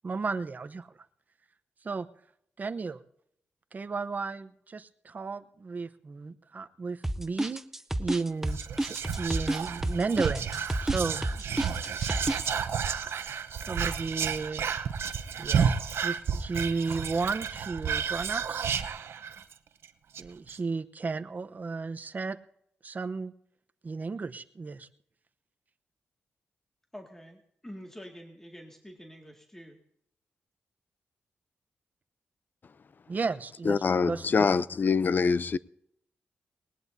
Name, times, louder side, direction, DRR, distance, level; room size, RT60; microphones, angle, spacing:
voice 1, 0.0-0.9 1.8-2.1 2.6-3.0 3.7-7.6 8.0-10.5 10.8-11.3 13.7-14.7 15.4-15.7 16.0-18.6 20.2-22.4 22.8-23.3 23.8-24.9 33.1-33.8 34.1-34.3, right 4 dB, 40° right, 0.8 m, -33 dB
sound 1, 7.0-12.5, right 1 dB, 10° right, 0.7 m, -30 dB
Whispering, 8.5-19.5 19.8-19.9 20.1-20.6, right 7 dB, 75° right, 0.8 m, -31 dB
voice 2, 26.9-29.8, equal, 10° left, 2.1 m, -47 dB
voice 3, 33.6-35.6, left 5 dB, 50° left, 0.5 m, -25 dB
20.0 x 19.5 x 2.7 m
cardioid pair, 85°, 4 cm